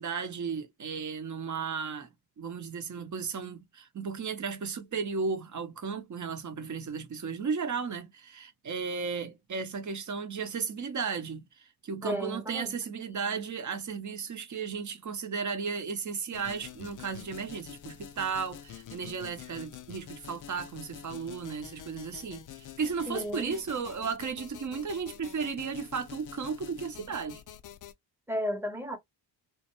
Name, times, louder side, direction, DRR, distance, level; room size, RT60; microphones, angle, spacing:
voice 1, 0.0-27.4, right 5 dB, 35° right, 0.8 m, -35 dB
voice 2, 12.0-12.7 23.1-23.6 28.3-29.0, equal, 5° right, 0.9 m, -33 dB
sound 1, 16.3-27.9, left 9 dB, 40° left, 0.5 m, -47 dB
2.2 x 2.2 x 2.9 m
supercardioid pair, 50°, 49 cm